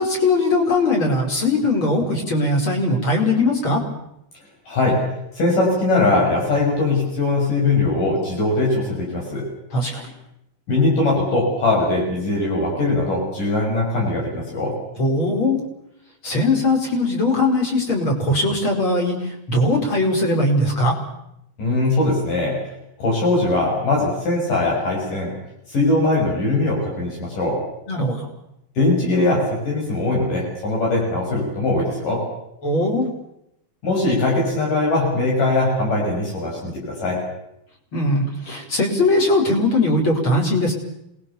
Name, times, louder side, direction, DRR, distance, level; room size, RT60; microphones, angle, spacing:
voice 1, 0.0-3.8 9.7-10.1 15.0-15.6 16.2-21.0 27.9-28.3 32.6-33.1 37.9-40.7, left 2 dB, 30° left, 1 dB, 5.4 m, -20 dB
voice 2, 4.7-5.0 5.4-9.5 10.7-14.7 21.6-22.6 23.0-25.4 25.7-27.6 28.8-32.2 33.8-37.2, left 2 dB, 55° left, -2 dB, 7.7 m, -21 dB
27.5 x 20.5 x 7.1 m, 0.81 s
omnidirectional pair, 4.4 m